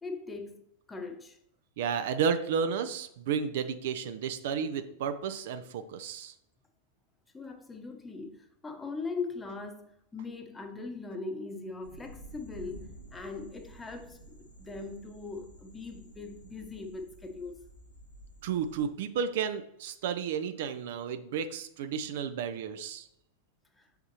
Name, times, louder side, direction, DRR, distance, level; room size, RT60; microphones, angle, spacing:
voice 1, 0.0-0.6 0.9-1.4 7.3-17.6 23.8-23.9, left 4 dB, 15° left, 0.9 m, -40 dB
voice 2, 1.8-6.3 18.4-23.1, right 7 dB, 55° right, 0.5 m, -32 dB
sound 1, 11.8-18.9, right 1 dB, 85° left, 1.8 m, -51 dB
6.7 x 5.7 x 2.9 m
figure-of-eight pair, 90°, 0 cm